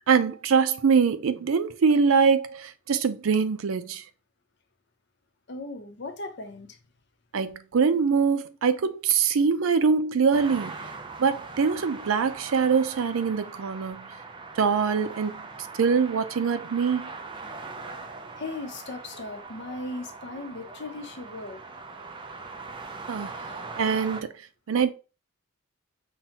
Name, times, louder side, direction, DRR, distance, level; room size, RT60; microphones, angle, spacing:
voice 1, 0.1-4.0 7.3-10.7 11.2-14.1 14.6-15.4 15.8-17.1 23.1-23.4 23.8-24.3 24.7-24.9, right 5 dB, 85° right, 0.4 m, -23 dB
voice 2, 5.5-6.8 18.4-21.6, left 2 dB, 60° left, 0.7 m, -37 dB
sound 1, 10.3-24.2, right 4 dB, 25° right, 0.4 m, -41 dB
5.7 x 2.2 x 2.8 m
head